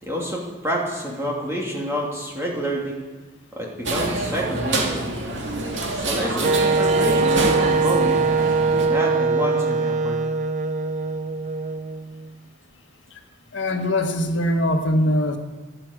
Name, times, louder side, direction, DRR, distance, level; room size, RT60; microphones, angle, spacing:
voice 1, 0.0-3.0 3.5-5.1 5.9-8.2 8.8-10.2, equal, 15° right, -3 dB, 2.6 m, -28 dB
sound 1, 3.8-8.9, right 2 dB, 70° right, 2.2 m, -26 dB
Wind instrument woodwind instrument, 6.4-12.3, right 3 dB, 35° right, 0.4 m, -22 dB
voice 2, 13.5-15.4, left 1 dB, 75° left, 3 dB, 1.5 m, -21 dB
11.5 x 8.8 x 8.6 m, 1.3 s
head